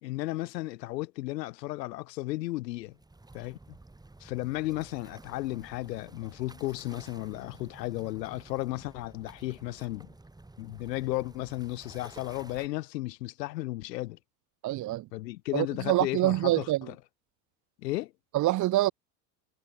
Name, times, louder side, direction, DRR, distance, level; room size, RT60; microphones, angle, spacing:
voice 1, 0.0-3.0 3.3-3.6 4.2-10.1 10.6-14.2 15.1-16.9 17.8-18.1, left 18 dB, 85° left, 1.2 m, -34 dB
sound 1, 2.8-12.7, right 2 dB, 10° right, 6.6 m, -52 dB
voice 2, 14.6-15.1 15.5-16.9 18.3-18.9, right 16 dB, 35° right, 1.0 m, -26 dB
supercardioid pair, 120°, 49 cm